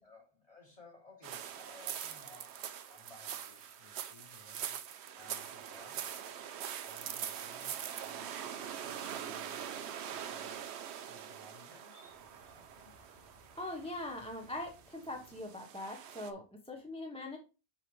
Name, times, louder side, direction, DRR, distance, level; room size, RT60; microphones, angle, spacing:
voice 1, 0.0-4.8 5.1-6.2 6.8-7.7 8.0-13.0, left 3 dB, 35° left, -2 dB, 2.8 m, -59 dB
sound 1, 1.2-16.3, right 9 dB, 80° right, 0.9 m, -43 dB
Fire, 11.9-15.6, equal, 80° left, 2.0 m, -63 dB
voice 2, 13.5-17.4, left 1 dB, 5° left, 2 dB, 0.7 m, -42 dB
5.8 x 5.8 x 3.1 m, 0.31 s
omnidirectional pair, 1.1 m